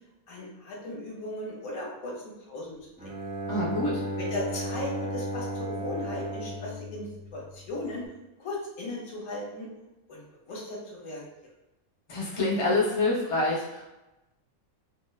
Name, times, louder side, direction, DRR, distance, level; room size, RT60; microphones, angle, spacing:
voice 1, 0.3-3.1 4.2-8.1 8.4-9.7 10.1-11.2, left 1 dB, 70° left, -3 dB, 1.1 m, -37 dB
Bowed string instrument, 3.0-7.8, right 1 dB, 10° right, 0.5 m, -35 dB
voice 2, 3.5-4.0 12.1-13.8, left 2 dB, 45° left, -6 dB, 0.4 m, -26 dB
2.7 x 2.0 x 2.3 m, 0.99 s
omnidirectional pair, 1.5 m